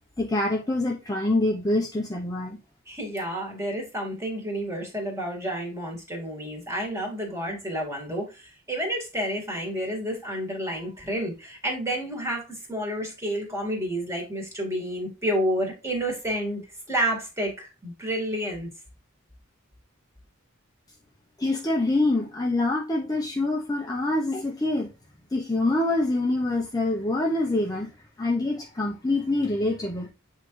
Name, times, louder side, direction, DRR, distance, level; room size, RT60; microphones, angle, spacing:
voice 1, 0.2-2.6 21.4-24.9 25.3-27.9 28.2-30.1, left 2 dB, 20° left, 0.7 m, -25 dB
voice 2, 2.9-16.6 16.9-18.7, equal, 15° right, 2.1 m, -30 dB
8.1 x 3.7 x 3.2 m
head